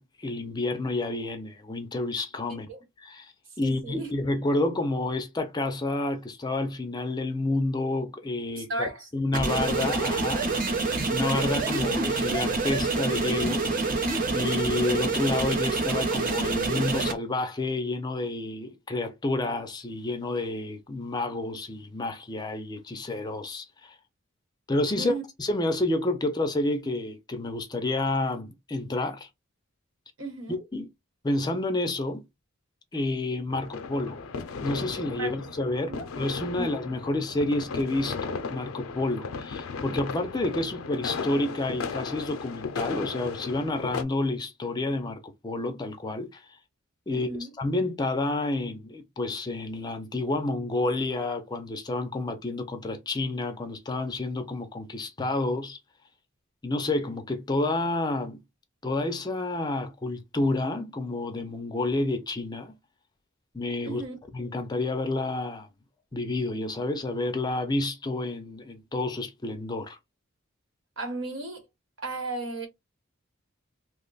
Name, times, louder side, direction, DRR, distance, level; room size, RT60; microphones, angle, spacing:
voice 1, 0.0-2.7 3.0-10.5 11.1-23.9 24.7-29.3 30.5-30.9 31.2-32.2 32.9-34.2 34.6-46.4 47.1-47.3 47.6-55.8 56.6-58.4 58.8-62.7 63.5-64.0 64.3-65.7 66.1-70.0, left 2 dB, 20° left, 0.4 m, -29 dB
voice 2, 3.6-4.1 8.6-9.1 25.0-25.2 30.2-30.6 35.2-35.3 35.9-36.0 36.6-36.7 47.1-47.5 63.9-64.1 71.0-71.6 72.0-72.7, right 2 dB, 70° right, 1.2 m, -34 dB
sound 1, 9.3-17.1, right 3 dB, 40° right, 0.6 m, -27 dB
sound 2, 33.5-44.0, left 5 dB, 90° left, 0.4 m, -35 dB
2.9 x 2.2 x 3.8 m
head